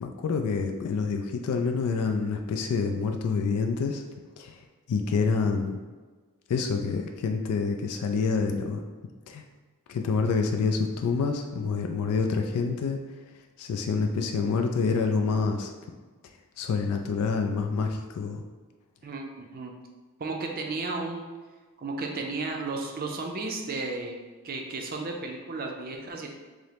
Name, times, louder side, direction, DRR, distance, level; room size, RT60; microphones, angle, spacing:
voice 1, 0.0-4.0 4.4-4.6 4.9-5.8 6.5-8.8 9.3-9.4 9.9-13.0 13.6-15.7 16.6-18.4, left 4 dB, 90° left, 4 dB, 0.3 m, -27 dB
voice 2, 19.0-19.7 20.2-21.2 21.8-24.2 24.4-26.3, right 3 dB, 40° right, 2 dB, 0.5 m, -33 dB
4.8 x 2.0 x 2.8 m, 1.4 s
head